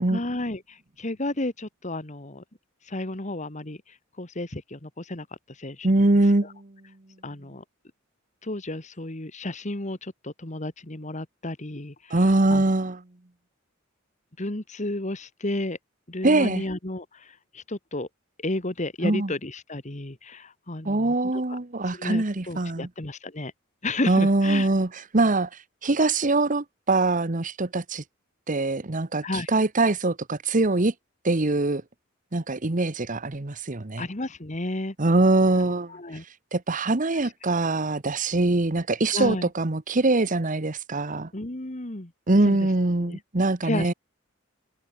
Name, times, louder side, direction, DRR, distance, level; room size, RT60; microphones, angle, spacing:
voice 1, 0.1-2.4 2.8-5.9 6.2-6.5 7.2-7.6 8.4-12.6 14.4-15.8 16.1-18.1 18.4-21.6 21.8-23.5 23.8-24.7 29.2-29.5 34.0-35.0 35.6-36.2 37.1-37.3 39.1-39.5 41.3-42.1 42.4-42.7 43.0-43.2 43.6-43.9, left 2 dB, 35° left, 1.9 m, -33 dB
voice 2, 5.8-6.7 12.1-13.0 16.2-16.6 19.0-19.3 20.8-22.9 24.1-24.9 25.1-28.0 28.5-30.9 31.2-31.8 32.3-34.0 35.0-36.2 36.5-41.3 42.3-43.9, right 2 dB, 40° right, 1.1 m, -23 dB
head